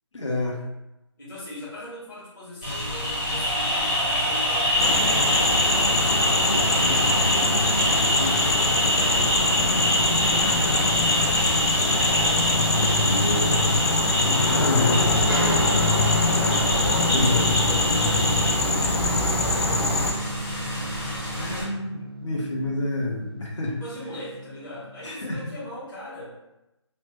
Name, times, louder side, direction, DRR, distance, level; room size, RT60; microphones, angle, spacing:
voice 1, 0.1-0.6 5.9-8.5 12.7-13.8 14.2-15.9 17.1-17.6 21.4-23.8 25.0-25.4, left 2 dB, 80° left, -3 dB, 0.9 m, -29 dB
voice 2, 1.2-5.5 8.7-13.4 13.8-14.7 16.3-20.3 23.8-26.3, left 1 dB, 40° left, -11 dB, 1.3 m, -39 dB
sound 1, 2.6-21.6, left 1 dB, 10° left, 0.5 m, -25 dB
sound 2, 4.8-20.1, left 2 dB, 60° left, 0.5 m, -23 dB
Guitar, 15.3-25.1, right 1 dB, 55° right, 0.4 m, -34 dB
3.2 x 2.1 x 3.1 m, 0.94 s
hypercardioid pair, 180°, 15 cm